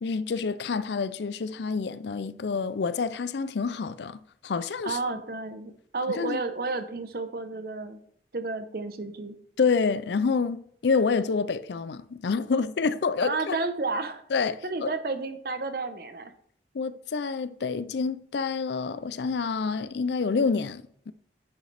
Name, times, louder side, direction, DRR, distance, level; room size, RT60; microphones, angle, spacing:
voice 1, 0.0-5.0 6.2-6.4 9.6-13.6 14.3-14.9 16.7-21.1, left 5 dB, 75° left, 0.4 m, -28 dB
voice 2, 4.8-8.0 8.3-9.4 13.2-14.2 14.6-16.3, right 3 dB, 55° right, 0.9 m, -31 dB
9.2 x 6.4 x 3.4 m
head